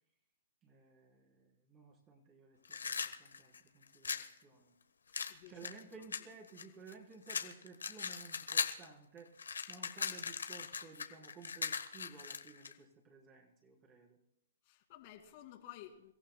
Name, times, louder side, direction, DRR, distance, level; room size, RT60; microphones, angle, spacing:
voice 1, 0.6-4.8 5.5-9.3 9.7-14.2, right 4 dB, 30° right, -2 dB, 3.8 m, -56 dB
sound 1, 2.6-4.3 5.1-6.9 7.3-8.9 9.2-12.7, left 6 dB, 85° left, 1.3 m, -39 dB
voice 2, 5.1-5.6 14.6-16.1, left 12 dB, 45° left, 2 dB, 2.5 m, -53 dB
28.5 x 15.0 x 2.3 m, 0.78 s
hypercardioid pair, 135°, 0 cm